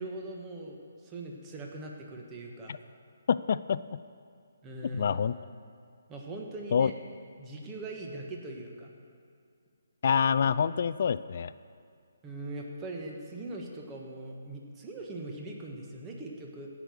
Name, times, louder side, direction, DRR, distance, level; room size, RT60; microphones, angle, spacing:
voice 1, 0.0-2.7 4.6-5.2 6.1-6.9 7.4-8.9 12.2-16.7, right 2 dB, 15° right, -1 dB, 1.6 m, -41 dB
voice 2, 3.3-3.8 4.8-5.4 6.7-6.9 10.0-11.5, left 7 dB, 55° left, 15 dB, 0.3 m, -26 dB
16.5 x 6.2 x 6.6 m, 2.3 s
figure-of-eight pair, 150°, 0 cm